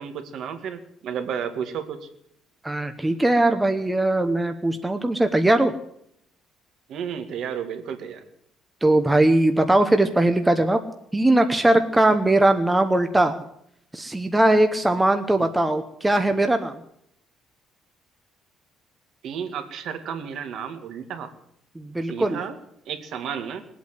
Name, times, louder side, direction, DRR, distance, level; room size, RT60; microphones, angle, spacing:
voice 1, 0.0-2.1 6.9-8.2 19.2-21.3 22.1-22.6 22.9-23.7, right 7 dB, 60° right, 7 dB, 2.0 m, -32 dB
voice 2, 2.6-5.7 8.8-10.8 11.1-13.4 13.9-16.8 21.8-22.4, right 1 dB, 10° right, 7 dB, 0.8 m, -20 dB
20.5 x 8.4 x 8.2 m, 0.73 s
cardioid pair, 165°, 0 cm